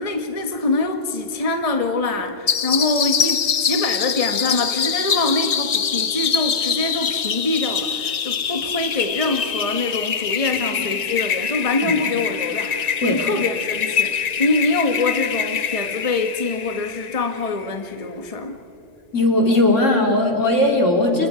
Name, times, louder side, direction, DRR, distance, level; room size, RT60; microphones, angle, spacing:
voice 1, 0.0-18.6, left 3 dB, 30° left, 5 dB, 1.3 m, -24 dB
sound 1, 2.5-17.7, left 7 dB, 45° left, 0.6 m, -24 dB
voice 2, 19.1-21.3, left 2 dB, 75° left, 1 dB, 3.5 m, -18 dB
29.0 x 28.0 x 5.0 m, 2.6 s
omnidirectional pair, 1.3 m